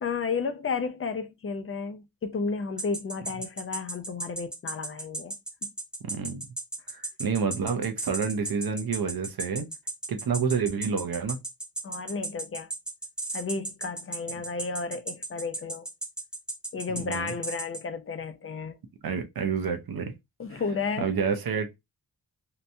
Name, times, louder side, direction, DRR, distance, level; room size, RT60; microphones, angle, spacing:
voice 1, 0.0-5.3 5.6-5.7 7.0-7.1 11.8-12.7 13.3-15.9 16.7-18.8 20.4-21.1, left 4 dB, 35° left, 0.5 m, -32 dB
sound 1, 2.8-17.8, right 2 dB, ahead, 0.7 m, -35 dB
voice 2, 6.0-6.5 6.9-9.7 10.1-11.4 17.0-17.3 19.0-20.1 20.5-20.6 21.0-21.8, right 6 dB, 60° right, 0.6 m, -29 dB
2.8 x 2.1 x 2.6 m
wide cardioid pair, 85°, 41 cm